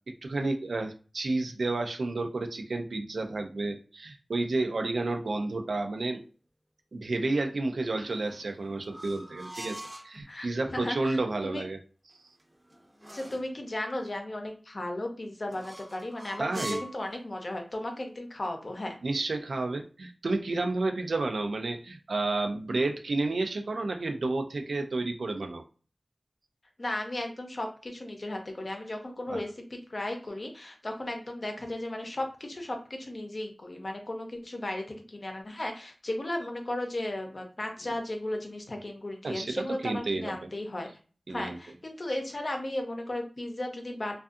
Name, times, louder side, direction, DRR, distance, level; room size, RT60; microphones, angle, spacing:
voice 1, 0.2-6.2 6.9-11.8 16.4-16.8 19.0-25.6 29.3-29.4 39.2-40.5 41.3-41.6, right 2 dB, 90° right, 5 dB, 0.3 m, -31 dB
sound 1, 8.0-10.1 12.1-13.5 15.5-17.0, right 1 dB, 20° right, 0.6 m, -43 dB
voice 2, 10.3-11.6 13.1-19.0 26.8-40.9 41.3-44.2, left 1 dB, 55° left, 3 dB, 0.6 m, -35 dB
2.5 x 2.3 x 2.4 m, 0.37 s
wide cardioid pair, 45°, 0 cm